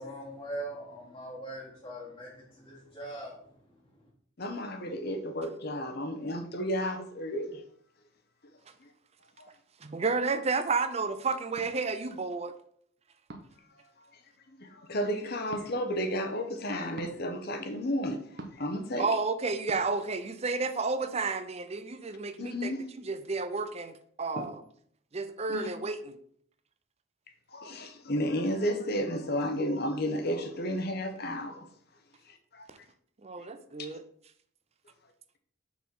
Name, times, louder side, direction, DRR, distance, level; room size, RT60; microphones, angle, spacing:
voice 1, 0.0-4.0, right 1 dB, 20° left, 1.5 m, -42 dB
voice 2, 4.4-7.6 8.8-8.9 9.4-9.5 14.5-19.1 22.4-22.8 24.4-24.5 25.5-25.7 27.5-31.7 32.3-32.7 33.9-34.0, equal, 50° left, 1.0 m, -32 dB
voice 3, 9.8-12.5 19.0-24.6 25.1-26.2 32.7-32.8 33.2-34.0, right 4 dB, 30° right, 0.5 m, -31 dB
sound 1, 11.6-11.7 13.3-13.6 15.5-15.7 17.0-17.2 18.4-18.7 19.7-19.8, right 2 dB, 55° right, 0.8 m, -43 dB
5.8 x 4.2 x 6.0 m
head